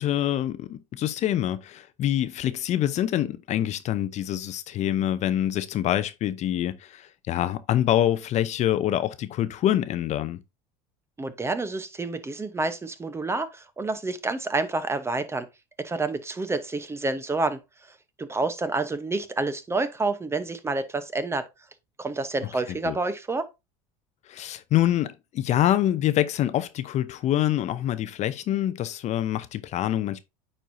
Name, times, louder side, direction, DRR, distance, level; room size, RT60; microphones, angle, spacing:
voice 1, 0.0-10.4 22.7-22.9 24.3-30.2, left 12 dB, 45° left, 0.6 m, -25 dB
voice 2, 11.2-15.5 15.8-21.5 22.0-23.5, right 3 dB, 15° right, 0.8 m, -29 dB
9.1 x 4.4 x 2.6 m
supercardioid pair, 100°, 17 cm